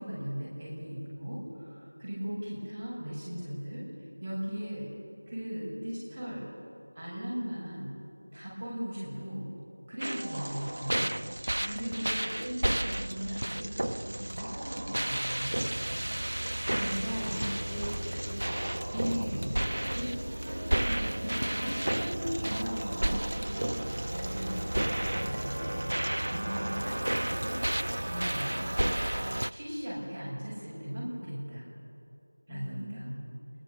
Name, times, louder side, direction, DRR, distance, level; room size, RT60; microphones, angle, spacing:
voice 1, 0.0-3.8 4.2-4.9 5.3-6.5 7.0-8.0 8.3-9.5 9.9-11.1 11.4-15.7 16.7-17.4 18.9-19.5 19.9-23.3 24.1-25.9 26.2-27.6 28.0-28.6 29.5-31.6 32.5-33.1, equal, 15° right, -8 dB, 7.0 m, -38 dB
sound 1, 10.0-29.5, right 1 dB, 60° right, 0.6 m, -32 dB
voice 2, 11.6-12.1 16.8-17.1 17.3-19.2 19.6-19.9 32.5-33.3, equal, 5° left, -7 dB, 1.6 m, -42 dB
26.5 x 21.5 x 8.4 m, 2.6 s
figure-of-eight pair, 180°, 0 cm